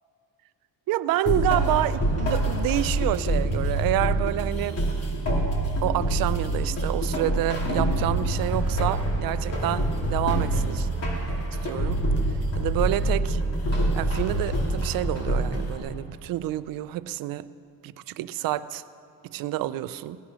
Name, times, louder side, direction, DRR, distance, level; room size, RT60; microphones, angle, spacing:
voice 1, 0.9-4.8 5.8-10.9 11.6-12.0 12.5-13.4 13.9-17.5 17.8-18.8 19.2-20.2, right 14 dB, 85° right, 15 dB, 0.5 m, -28 dB
sound 1, 1.3-15.8, right 1 dB, 45° left, 2.5 m, -26 dB
17.0 x 11.5 x 6.2 m, 2.5 s
cardioid pair, 175°, 33 cm